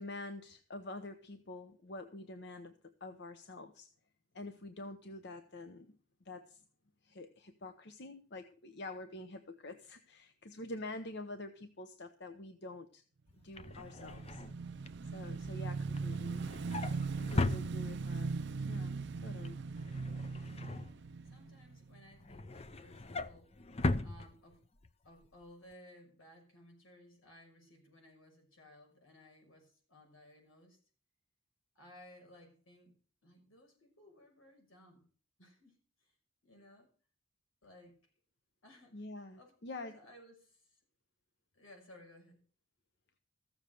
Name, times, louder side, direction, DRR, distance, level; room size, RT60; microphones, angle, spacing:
voice 1, 0.0-3.9 4.3-6.0 6.2-6.6 7.0-13.0 13.4-14.4 15.0-16.4 17.2-18.3 18.7-19.6 38.9-40.0, left 2 dB, 55° left, 8 dB, 0.9 m, -47 dB
Drawer open or close, 13.3-18.3 18.7-19.0 19.3-21.5 21.9-24.9 25.2-25.4 25.7-25.8, left 2 dB, 30° left, 0.6 m, -39 dB
Motorcycle / Engine, 13.6-22.1, right 4 dB, 55° right, 0.5 m, -39 dB
voice 2, 20.5-20.8 21.2-23.5 24.0-24.6 25.0-30.8 31.7-32.9 33.2-35.1 35.4-36.1 36.4-36.9 37.6-38.0 38.6-40.8 41.5-42.4, left 1 dB, 85° left, 2 dB, 6.0 m, -59 dB
15.0 x 7.4 x 6.5 m, 0.41 s
head